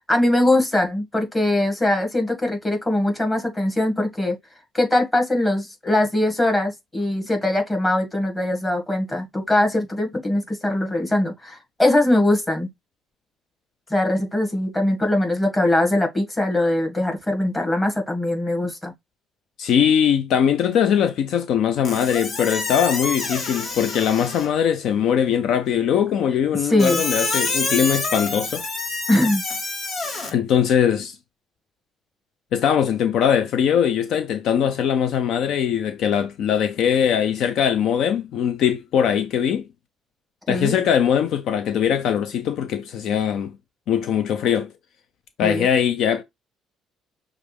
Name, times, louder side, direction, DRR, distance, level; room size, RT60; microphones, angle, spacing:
voice 1, 0.1-4.4 4.7-12.7 13.9-18.9 26.6-27.0 29.1-29.4 40.5-40.7 45.4-45.7, left 1 dB, 15° left, 2.0 m, -21 dB
voice 2, 19.6-28.6 30.3-31.2 32.5-39.7 40.5-43.5 43.9-44.7 45.4-46.2, left 8 dB, 70° left, 0.5 m, -21 dB
Squeak, 21.8-24.6 26.8-30.3, left 3 dB, 45° left, 1.5 m, -27 dB
6.3 x 2.5 x 3.4 m
cardioid pair, 100°, 0 cm